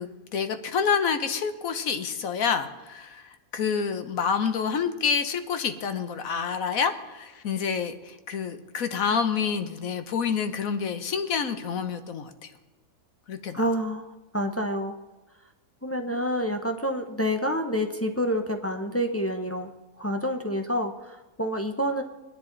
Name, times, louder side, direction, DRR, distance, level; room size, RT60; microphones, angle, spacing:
voice 1, 0.0-12.5 13.3-13.6, left 6 dB, 65° left, 9 dB, 1.3 m, -28 dB
voice 2, 13.5-15.0 15.8-19.7 20.0-22.0, equal, 20° left, 4 dB, 0.4 m, -28 dB
21.5 x 10.5 x 3.9 m, 1.2 s
omnidirectional pair, 1.6 m